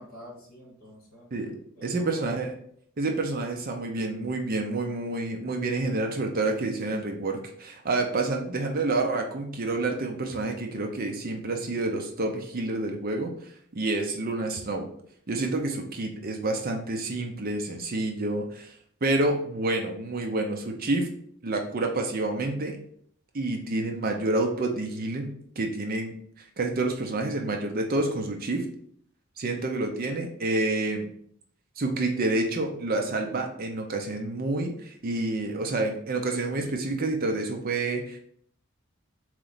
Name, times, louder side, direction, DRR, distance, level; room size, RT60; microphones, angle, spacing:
voice 1, 0.0-1.3 1.8-2.4 29.5-29.6, equal, 40° left, -3 dB, 1.9 m, -46 dB
voice 2, 1.3-2.5 3.0-14.9 15.3-18.7 19.0-21.1 21.4-22.8 23.3-28.7 29.4-31.1 31.8-38.2, right 2 dB, 40° right, 3 dB, 0.5 m, -28 dB
3.8 x 3.1 x 3.9 m, 0.63 s
head